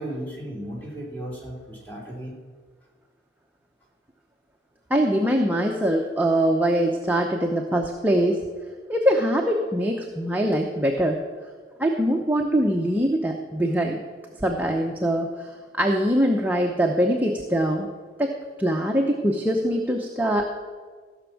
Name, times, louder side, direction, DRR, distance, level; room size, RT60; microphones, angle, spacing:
voice 1, 0.0-2.4, right 1 dB, 10° left, -4 dB, 3.1 m, -35 dB
voice 2, 4.9-8.4 8.9-11.2 11.8-14.0 14.4-15.5 15.8-17.9 18.2-20.5, equal, 10° right, 1 dB, 0.8 m, -23 dB
15.0 x 6.2 x 7.0 m, 1.5 s
head